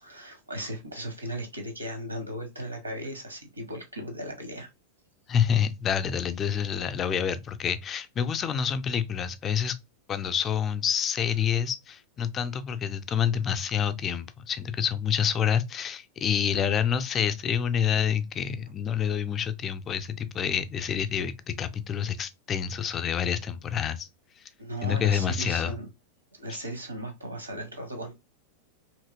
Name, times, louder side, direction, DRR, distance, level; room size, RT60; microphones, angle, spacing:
voice 1, 0.0-4.7 24.6-25.9 26.3-28.1, right 1 dB, 80° right, 0.8 m, -37 dB
voice 2, 5.3-9.8 10.1-24.1 24.8-25.7 26.5-26.6, left 8 dB, 25° left, 0.4 m, -27 dB
3.0 x 2.7 x 2.4 m
figure-of-eight pair, 90°, 0 cm